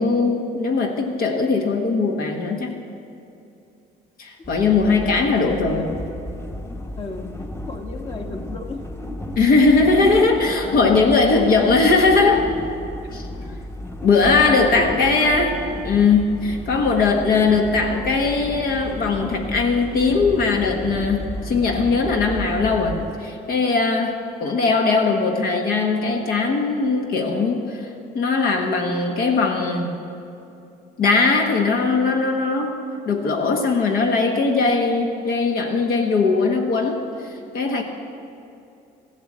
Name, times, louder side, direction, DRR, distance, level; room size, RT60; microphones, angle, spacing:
voice 1, 0.0-2.8 4.2-5.9 9.4-12.5 13.1-13.3 14.0-15.5 15.8-27.9 28.1-29.9 31.0-32.7 33.0-37.8, left 4 dB, 65° left, 2 dB, 1.3 m, -19 dB
sound 1, 4.4-23.1, left 1 dB, 15° left, 1.0 m, -33 dB
voice 2, 4.9-6.0 7.0-8.8 10.2-11.7 13.4-13.5 14.3-15.4, left 3 dB, 35° left, 3 dB, 1.4 m, -34 dB
14.5 x 8.1 x 7.4 m, 2.7 s
cardioid pair, 110°, 17 cm